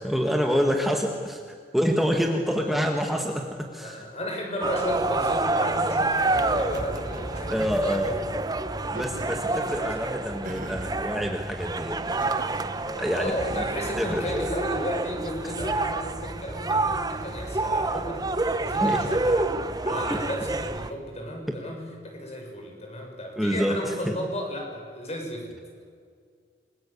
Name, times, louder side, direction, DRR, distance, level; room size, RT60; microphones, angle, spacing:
voice 1, 0.0-4.0 7.5-8.2 8.9-12.3 13.0-13.6 14.0-14.5 18.8-19.1 20.0-20.2 21.5-21.6 23.4-24.1, equal, ahead, 2 dB, 1.5 m, -27 dB
voice 2, 3.8-8.2 9.0-10.0 12.8-19.4 19.8-25.5, equal, 35° left, 2 dB, 6.7 m, -34 dB
sound 1, 4.6-20.9, right 2 dB, 20° right, 1.0 m, -28 dB
Laughter, 6.7-7.8 8.8-9.6 10.4-11.0 12.1-12.8, right 2 dB, 45° right, 2.0 m, -41 dB
28.5 x 22.0 x 8.4 m, 2.1 s
head